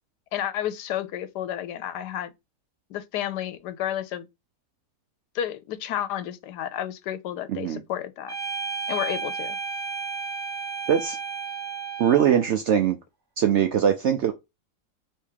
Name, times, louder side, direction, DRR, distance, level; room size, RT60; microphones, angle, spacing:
voice 1, 0.3-2.3 2.9-4.3 5.3-8.4 8.9-9.6, left 11 dB, 90° left, 1.2 m, -31 dB
voice 2, 7.5-7.8 10.9-11.2 12.0-13.0 13.4-14.3, right 9 dB, 75° right, 0.6 m, -21 dB
sound 1, 8.3-12.5, right 5 dB, 25° right, 0.5 m, -33 dB
3.5 x 3.1 x 4.6 m
omnidirectional pair, 1.7 m